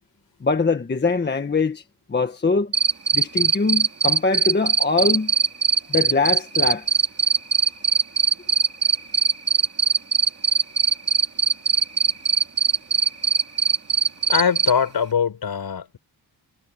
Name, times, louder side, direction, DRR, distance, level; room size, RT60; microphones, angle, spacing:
voice 1, 0.4-1.8 2.1-2.7 3.1-5.3 5.9-6.9, left 4 dB, 25° left, 1.5 m, -22 dB
Cricket, 2.7-14.7, right 5 dB, 35° right, 2.6 m, -19 dB
voice 2, 14.3-16.0, left 7 dB, 60° left, 6.9 m, -22 dB
wide cardioid pair, 165°, 41 cm